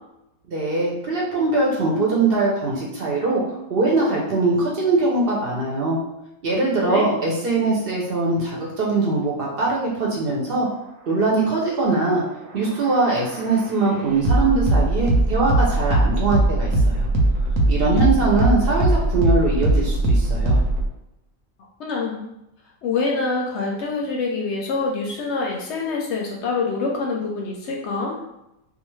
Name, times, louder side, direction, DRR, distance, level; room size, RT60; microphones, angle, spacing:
voice 1, 0.5-3.4 3.7-6.0 6.4-10.7 11.1-12.2 12.5-17.1 17.7-20.6, right 3 dB, 55° right, -3 dB, 0.8 m, -21 dB
sound 1, 12.2-20.9, right 1 dB, 80° right, 1.0 m, -20 dB
voice 2, 21.8-22.3 22.8-28.2, left 4 dB, 65° left, -1 dB, 0.8 m, -25 dB
2.4 x 2.4 x 3.0 m, 0.88 s
omnidirectional pair, 1.3 m